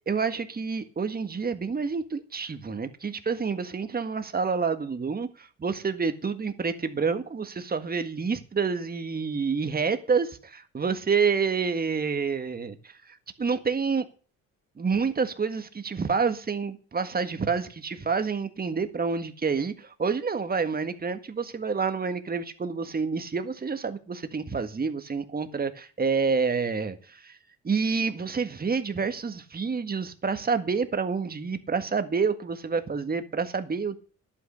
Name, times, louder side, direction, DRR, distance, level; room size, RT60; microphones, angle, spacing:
voice 1, 0.1-12.8 13.1-14.0 14.8-27.4 27.6-34.0, right 5 dB, 30° right, 1.7 m, -28 dB
11.0 x 8.9 x 6.6 m
cardioid pair, 90°, 30 cm